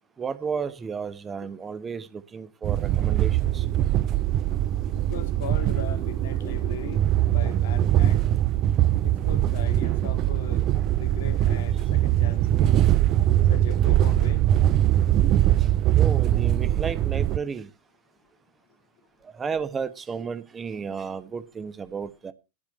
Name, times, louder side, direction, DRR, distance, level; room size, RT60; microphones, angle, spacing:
voice 1, 0.2-3.6 15.6-15.7 16.0-17.7 19.4-22.3, right 6 dB, 20° right, 1.2 m, -33 dB
sound 1, 2.6-17.4, right 12 dB, 35° right, 0.6 m, -22 dB
voice 2, 4.9-8.3 9.0-10.7 11.0-13.0 13.5-14.4, left 8 dB, 55° left, 2.1 m, -39 dB
13.5 x 4.9 x 8.0 m
figure-of-eight pair, 90°, 0 cm